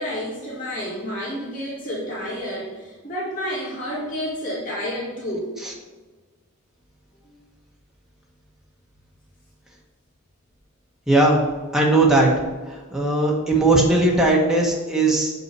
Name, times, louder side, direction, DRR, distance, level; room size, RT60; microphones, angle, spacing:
voice 1, 0.0-5.5 7.2-7.4, equal, 40° left, -6 dB, 2.1 m, -30 dB
voice 2, 11.1-11.4 11.7-12.3 12.7-15.3, right 2 dB, ahead, -2 dB, 1.3 m, -18 dB
6.9 x 5.5 x 4.7 m, 1.3 s
head